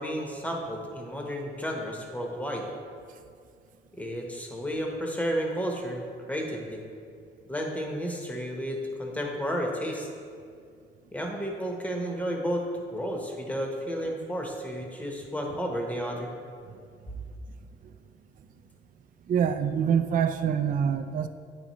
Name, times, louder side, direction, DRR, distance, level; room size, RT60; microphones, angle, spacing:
voice 1, 0.0-2.6 3.9-6.8 7.5-10.1 11.1-12.7 12.9-16.3 17.1-17.2, equal, 5° left, 0 dB, 1.0 m, -32 dB
voice 2, 19.3-21.3, right 8 dB, 45° right, 7 dB, 0.4 m, -25 dB
10.5 x 3.7 x 3.0 m, 2.3 s
cardioid pair, 90°, 20 cm